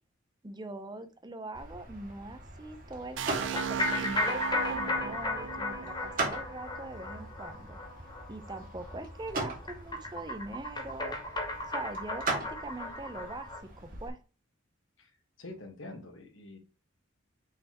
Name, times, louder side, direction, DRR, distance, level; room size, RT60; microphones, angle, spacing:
voice 1, 0.4-7.8 8.3-11.2 11.7-13.5 13.8-14.2, right 2 dB, 20° right, 9 dB, 0.7 m, -42 dB
sound 1, 1.5-14.1, right 3 dB, 45° right, 2.0 m, -40 dB
sound 2, 3.2-7.0, right 7 dB, 65° right, 0.5 m, -37 dB
sound 3, 3.6-13.6, left 2 dB, 20° left, 1.0 m, -35 dB
voice 2, 15.4-16.6, left 2 dB, 85° left, 4 dB, 1.6 m, -45 dB
5.9 x 5.4 x 3.0 m, 0.33 s
head